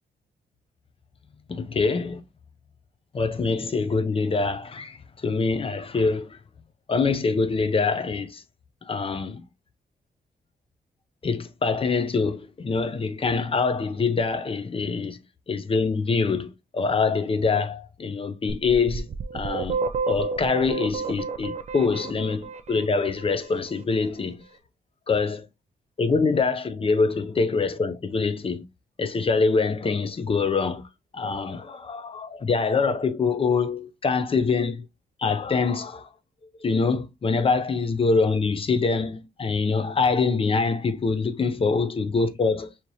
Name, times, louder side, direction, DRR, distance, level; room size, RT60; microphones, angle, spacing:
voice 1, 1.5-2.2 3.1-6.4 6.9-8.4 8.8-9.4 11.2-15.2 15.5-19.1 19.3-19.8 20.1-24.4 25.1-25.5 26.0-28.6 29.0-30.9 31.1-34.9 35.2-36.1 36.6-42.7, left 4 dB, 35° left, 0.6 m, -24 dB
sound 1, 18.5-23.3, right 4 dB, 45° right, 0.5 m, -30 dB
4.7 x 2.8 x 2.8 m
cardioid pair, 100°, 16 cm